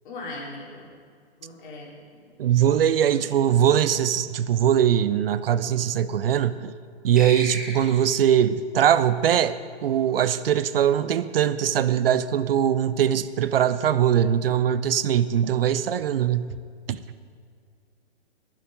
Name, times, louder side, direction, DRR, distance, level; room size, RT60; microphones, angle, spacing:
voice 1, 0.0-0.9 1.4-1.9 3.0-3.3, left 2 dB, 50° left, -2 dB, 3.6 m, -38 dB
voice 2, 2.4-6.7 7.0-16.6 16.9-17.0, right 9 dB, 60° right, 14 dB, 0.6 m, -21 dB
sound 1, 7.2-8.3, right 1 dB, ahead, 1.5 m, -35 dB
19.0 x 7.4 x 5.2 m, 2.2 s
hypercardioid pair, 145°, 32 cm